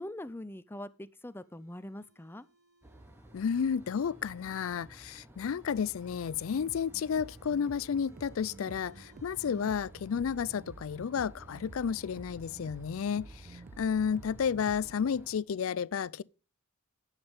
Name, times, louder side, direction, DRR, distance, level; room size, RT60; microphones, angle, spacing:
voice 1, 0.0-2.5, left 1 dB, 10° left, 0.6 m, -43 dB
sound 1, 1.1-5.0 5.5-9.6, right 4 dB, 80° right, 4.0 m, -65 dB
sound 2, 2.8-15.4, right 1 dB, 10° right, 1.1 m, -54 dB
voice 2, 3.3-16.2, left 7 dB, 70° left, 0.4 m, -32 dB
sound 3, 6.4-15.0, right 3 dB, 40° right, 0.5 m, -52 dB
10.0 x 7.5 x 5.3 m
head